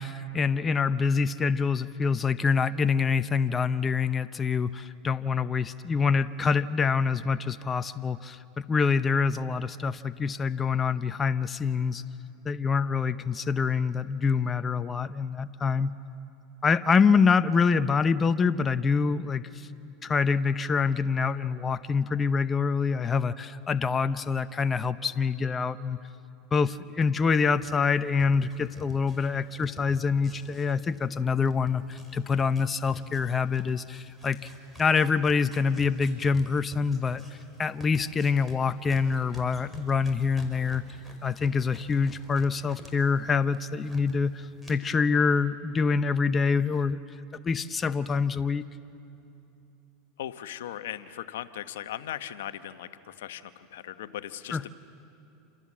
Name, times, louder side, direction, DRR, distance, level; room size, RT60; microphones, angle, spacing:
voice 1, 0.0-12.0 12.4-15.9 16.6-26.0 26.5-34.4 34.8-37.2 37.6-40.8 41.2-47.0 47.4-48.7 54.5-54.6, left 5 dB, 25° left, 13 dB, 0.7 m, -26 dB
sound 1, 27.6-31.2 31.4-42.9 43.2-44.1 44.6-44.7, left 1 dB, ahead, 5.3 m, -48 dB
voice 2, 50.2-54.7, left 11 dB, 80° left, 11 dB, 1.0 m, -38 dB
28.0 x 26.5 x 7.5 m, 2.8 s
hypercardioid pair, 105°, 0 cm